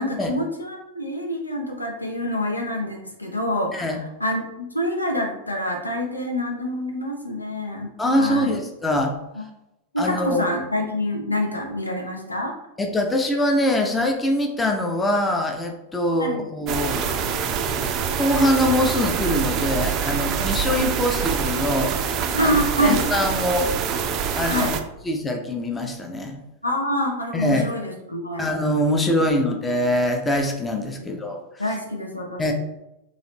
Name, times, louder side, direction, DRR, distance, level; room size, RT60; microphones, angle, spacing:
voice 1, 0.0-8.6 9.3-9.4 9.9-12.5 16.2-16.4 22.3-23.1 24.5-24.8 26.6-28.5 28.9-29.6 31.0-31.3 31.6-32.5, left 1 dB, 85° left, 1 dB, 0.7 m, -26 dB
voice 2, 8.0-9.1 10.0-10.5 12.8-17.4 18.1-22.0 22.4-22.5 22.8-23.7 24.3-24.7 25.1-26.4 27.3-27.7 28.4-31.4 32.4-32.5, left 1 dB, 15° left, 3 dB, 0.6 m, -23 dB
sound 1, 16.7-24.8, right 7 dB, 35° right, 0.4 m, -25 dB
4.0 x 3.1 x 3.0 m, 0.90 s
figure-of-eight pair, 90°, 0 cm